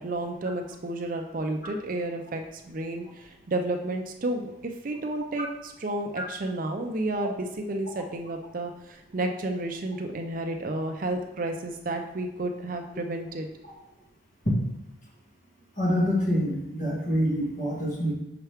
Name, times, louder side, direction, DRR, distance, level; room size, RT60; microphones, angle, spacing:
voice 1, 0.0-13.5, right 2 dB, 45° right, 5 dB, 0.5 m, -31 dB
voice 2, 15.8-18.1, equal, 40° left, -4 dB, 1.9 m, -26 dB
5.8 x 5.6 x 3.4 m, 0.88 s
head